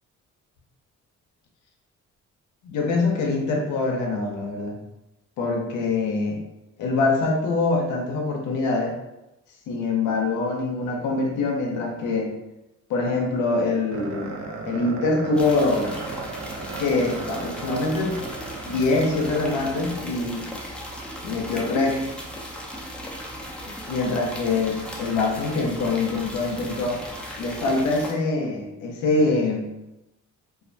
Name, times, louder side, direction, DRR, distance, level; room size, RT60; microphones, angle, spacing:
voice 1, 2.6-4.8 5.4-6.4 6.8-9.0 9.7-12.3 12.9-14.3 14.7-15.9 16.8-18.1 18.6-20.5 21.2-22.0 23.9-27.0 27.4-29.7, left 3 dB, 80° left, 1 dB, 0.5 m, -24 dB
sound 1, 13.9-20.3, right 4 dB, 65° right, 0.5 m, -36 dB
sound 2, 15.3-28.1, equal, 5° left, 0.3 m, -37 dB
2.3 x 2.1 x 2.5 m, 0.95 s
cardioid pair, 90°, 30 cm